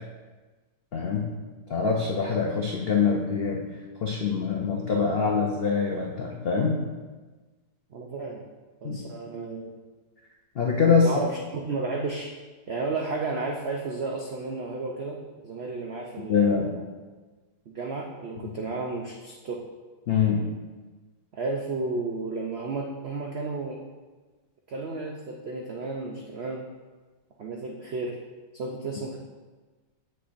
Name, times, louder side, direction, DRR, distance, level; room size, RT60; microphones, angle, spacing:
voice 1, 0.9-1.3 1.7-3.6 4.0-6.8 8.8-9.0 10.6-11.1 16.3-16.7 20.1-20.4, left 5 dB, 85° left, -1 dB, 0.5 m, -24 dB
voice 2, 7.9-8.4 8.8-9.7 11.0-12.3 12.7-15.2 15.4-16.9 17.7-19.6 21.3-23.8 24.7-26.6 27.4-28.2 28.5-29.2, right 3 dB, 80° right, 0 dB, 0.5 m, -32 dB
8.0 x 6.4 x 2.6 m, 1.3 s
omnidirectional pair, 1.9 m